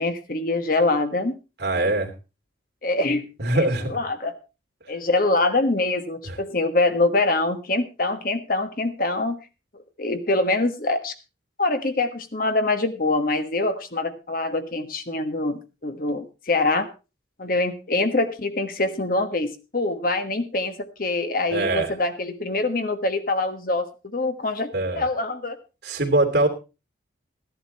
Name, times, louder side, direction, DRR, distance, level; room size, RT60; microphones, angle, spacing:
voice 1, 0.0-1.3 2.8-3.3 3.5-4.3 4.9-9.4 9.7-11.1 11.6-16.9 17.4-23.9 24.1-24.7 24.9-25.6, left 2 dB, 50° left, 8 dB, 1.3 m, -24 dB
voice 2, 1.6-2.1 3.4-4.0 6.2-6.4 21.5-21.9 24.7-25.1 25.8-26.5, right 2 dB, 65° right, 3 dB, 2.7 m, -22 dB
14.5 x 11.0 x 4.2 m, 0.31 s
head